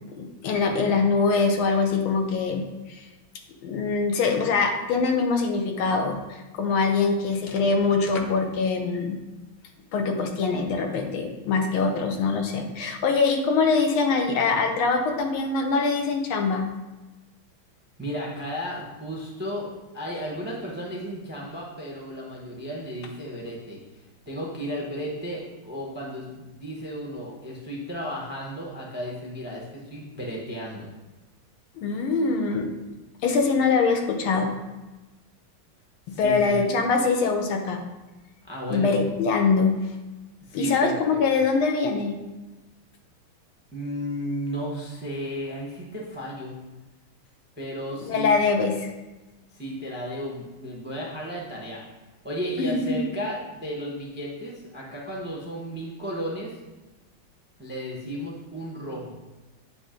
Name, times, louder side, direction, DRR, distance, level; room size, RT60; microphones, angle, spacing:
voice 1, 0.2-3.0 3.6-9.2 9.9-16.6 31.8-32.7 33.2-34.5 36.2-37.8 38.7-39.8 40.5-42.2 48.0-48.9 52.6-53.0, left 4 dB, 90° left, 4 dB, 1.7 m, -23 dB
voice 2, 18.0-19.7 19.9-23.8 24.3-30.9 36.1-36.7 38.4-39.0 40.4-41.2 43.7-46.6 47.6-48.3 49.5-51.8 52.2-56.6 57.6-59.2, equal, 15° right, -3 dB, 0.4 m, -34 dB
8.1 x 2.8 x 5.0 m, 1.1 s
omnidirectional pair, 2.2 m